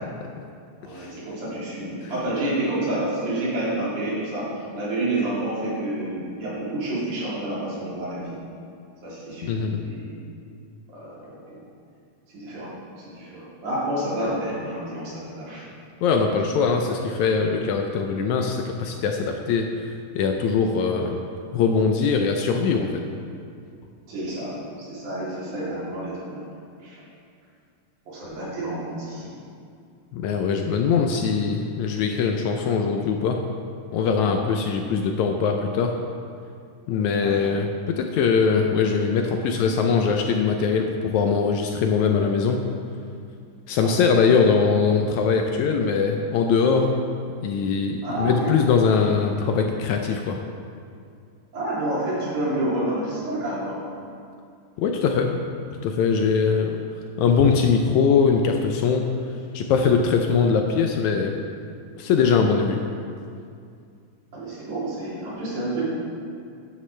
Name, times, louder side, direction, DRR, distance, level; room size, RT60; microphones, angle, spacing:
voice 1, 0.8-8.4 9.0-9.6 9.8-10.1 10.9-11.6 12.3-15.6 24.1-26.4 26.8-27.0 28.1-29.3 37.2-37.4 43.8-44.0 48.0-48.5 51.5-53.8 62.1-62.3 64.3-65.8, right 1 dB, 70° right, -8 dB, 4.5 m, -29 dB
voice 2, 9.4-9.8 16.0-19.7 20.2-21.2 21.5-23.0 30.1-33.4 33.9-35.9 36.9-42.6 43.7-47.0 47.4-50.4 54.8-55.3 55.7-56.8 57.2-59.1 59.5-61.4 62.0-62.8, left 5 dB, 75° left, 3 dB, 1.8 m, -21 dB
12.5 x 10.0 x 3.3 m, 2.4 s
omnidirectional pair, 3.7 m